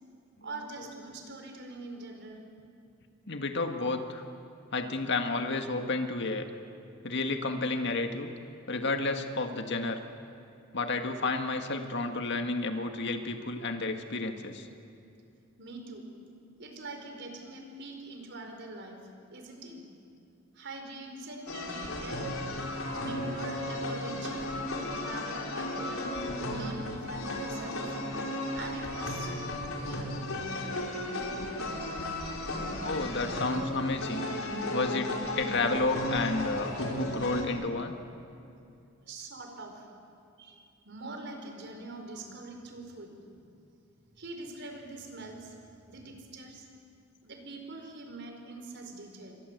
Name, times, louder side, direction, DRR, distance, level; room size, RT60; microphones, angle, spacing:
voice 1, 0.4-2.4 15.6-16.1 16.6-19.0 19.3-19.9 20.5-22.3 23.0-26.0 26.5-27.8 28.5-30.1 39.1-39.9 40.4-43.2 43.5-43.6 44.2-45.6 45.9-46.7 47.2-49.3, right 2 dB, 55° right, 4 dB, 4.7 m, -44 dB
voice 2, 3.3-4.2 4.7-6.5 7.0-8.3 8.7-10.0 10.7-14.7 25.6-25.7 32.8-34.3 34.7-37.9, left 3 dB, 55° left, 6 dB, 1.9 m, -31 dB
sound 1, 21.5-37.4, left 1 dB, 75° left, 4.5 m, -34 dB
29.0 x 24.0 x 8.1 m, 2.6 s
head